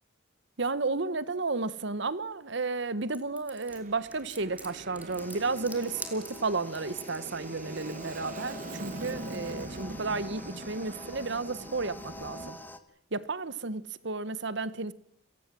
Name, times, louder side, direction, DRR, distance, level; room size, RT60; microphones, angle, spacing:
voice 1, 0.6-12.6 13.1-14.9, right 3 dB, 60° right, 1.2 m, -32 dB
sound 1, 3.1-7.3, right 2 dB, 10° right, 3.1 m, -44 dB
Aircraft, 3.7-12.5, right 2 dB, 40° right, 1.3 m, -43 dB
sound 2, 5.2-12.8, left 1 dB, 10° left, 1.7 m, -46 dB
29.0 x 18.5 x 7.6 m
head